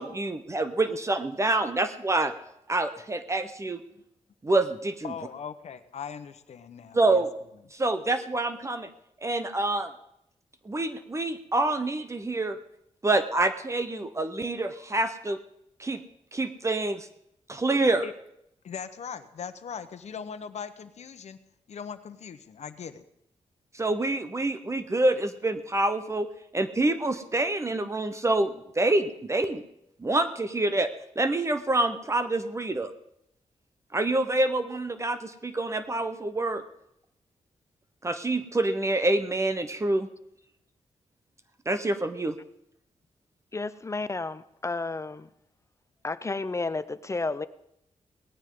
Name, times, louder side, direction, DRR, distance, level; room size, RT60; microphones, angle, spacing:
voice 1, 0.0-2.3 2.7-3.8 4.4-5.1 6.9-7.3 7.7-8.9 9.2-9.9 10.6-12.6 13.0-15.4 15.8-16.0 16.3-17.1 17.5-18.0 23.7-26.3 26.5-29.6 30.0-30.9 31.2-32.9 33.9-36.6 38.0-40.1 41.7-42.4, right 2 dB, 25° right, 10 dB, 0.9 m, -26 dB
voice 2, 5.0-7.2 18.0-18.1 18.6-21.4 21.7-23.0, left 7 dB, 70° left, 11 dB, 1.0 m, -39 dB
voice 3, 43.5-45.3 46.0-47.5, left 3 dB, 25° left, 14 dB, 0.6 m, -32 dB
18.5 x 14.5 x 3.8 m, 0.79 s
cardioid pair, 100°, 12 cm